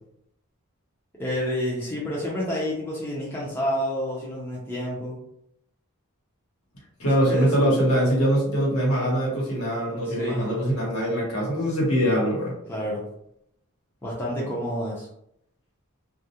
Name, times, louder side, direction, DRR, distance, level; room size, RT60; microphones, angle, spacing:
voice 1, 1.2-5.2 7.3-7.5 10.0-10.5 12.7-13.0 14.0-15.1, equal, 10° left, -6 dB, 0.5 m, -29 dB
voice 2, 7.0-12.5, equal, 75° left, -4 dB, 1.1 m, -23 dB
2.3 x 2.0 x 2.8 m, 0.75 s
head